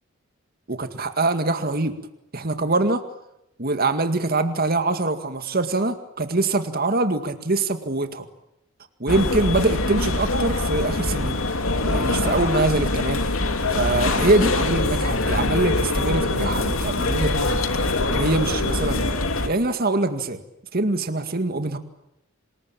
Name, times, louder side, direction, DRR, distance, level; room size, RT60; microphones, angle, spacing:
voice 1, 0.7-2.0 2.3-3.0 3.6-8.3 9.0-11.4 11.9-13.3 13.7-17.6 18.1-19.1 19.5-20.4 20.7-21.8, right 2 dB, 50° right, 8 dB, 2.1 m, -24 dB
sound 1, 9.1-19.5, left 2 dB, 90° left, 2.6 m, -23 dB
27.0 x 21.0 x 9.0 m, 0.82 s
head